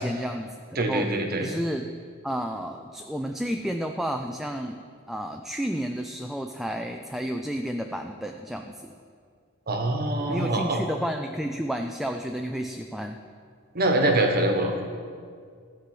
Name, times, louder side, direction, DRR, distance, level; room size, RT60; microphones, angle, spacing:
voice 1, 0.0-1.1 1.4-1.9 2.2-4.8 5.1-8.9 10.3-13.2, equal, ahead, 4 dB, 0.4 m, -31 dB
voice 2, 0.8-1.5 9.7-10.8 13.7-14.8, right 1 dB, 50° right, 4 dB, 1.3 m, -24 dB
13.5 x 4.9 x 7.8 m, 2.1 s
head